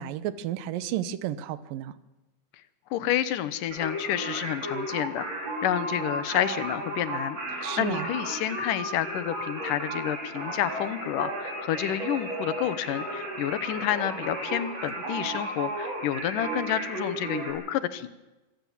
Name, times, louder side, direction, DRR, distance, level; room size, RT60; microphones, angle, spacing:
voice 1, 0.0-1.9 7.6-8.1, right 11 dB, 85° right, 15 dB, 2.7 m, -32 dB
voice 2, 2.9-18.1, left 11 dB, 75° left, 14 dB, 2.6 m, -29 dB
Singing, 3.7-17.5, right 1 dB, 50° right, 6.5 m, -34 dB
25.0 x 16.5 x 7.2 m, 1.1 s
omnidirectional pair, 3.9 m